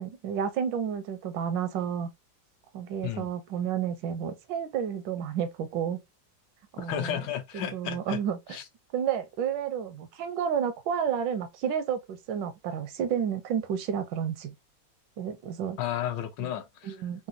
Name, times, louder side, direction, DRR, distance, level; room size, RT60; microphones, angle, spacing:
voice 1, 0.0-2.1 2.7-6.0 6.7-7.2 7.5-8.6 8.9-14.5 15.2-15.8 16.4-16.5 16.8-17.3, right 8 dB, 80° right, 1.3 m, -31 dB
voice 2, 6.8-8.2 8.5-8.6 15.8-17.0, left 11 dB, 75° left, 1.3 m, -33 dB
3.9 x 2.2 x 2.6 m
omnidirectional pair, 2.0 m